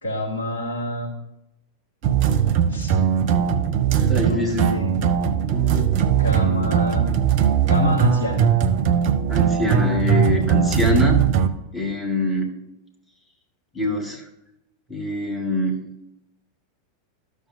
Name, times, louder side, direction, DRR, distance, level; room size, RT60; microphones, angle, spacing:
voice 1, 0.0-1.1 2.7-3.0 4.2-4.9 6.2-7.1 7.7-8.5, left 1 dB, 70° left, -2 dB, 2.0 m, -26 dB
sound 1, 2.0-11.5, right 8 dB, 45° right, 0.6 m, -20 dB
voice 2, 3.9-4.7 5.5-5.9 9.3-11.3 11.7-12.5 13.7-14.2 14.9-15.8, left 1 dB, 10° left, -1 dB, 1.8 m, -24 dB
13.0 x 6.5 x 2.6 m, 0.85 s
figure-of-eight pair, 90°, 0 cm